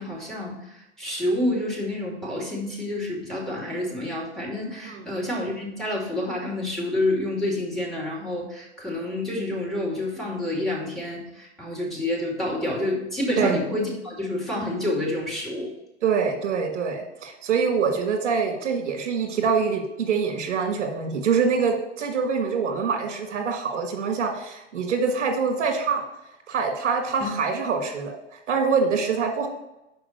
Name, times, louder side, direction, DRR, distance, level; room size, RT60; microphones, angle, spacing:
voice 1, 0.0-15.7 27.2-27.3, left 1 dB, ahead, -3 dB, 2.3 m, -28 dB
voice 2, 4.8-5.2 13.4-13.6 16.0-26.0 26.5-29.5, right 5 dB, 75° right, 4 dB, 1.6 m, -25 dB
5.9 x 4.8 x 6.5 m, 0.90 s
hypercardioid pair, 105°, 36 cm